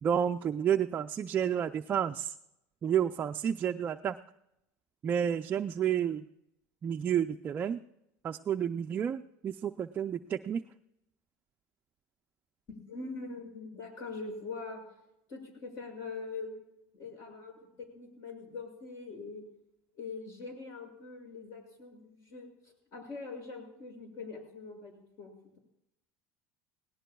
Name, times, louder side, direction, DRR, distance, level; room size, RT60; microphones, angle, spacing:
voice 1, 0.0-2.3 2.8-4.2 5.0-6.2 6.8-7.8 8.2-10.6, right 9 dB, 25° right, 5 dB, 0.4 m, -30 dB
voice 2, 12.7-14.8 15.3-19.4 19.9-25.6, left 4 dB, 45° left, 3 dB, 6.4 m, -43 dB
19.5 x 18.0 x 2.3 m, 0.83 s
supercardioid pair, 140°, 7 cm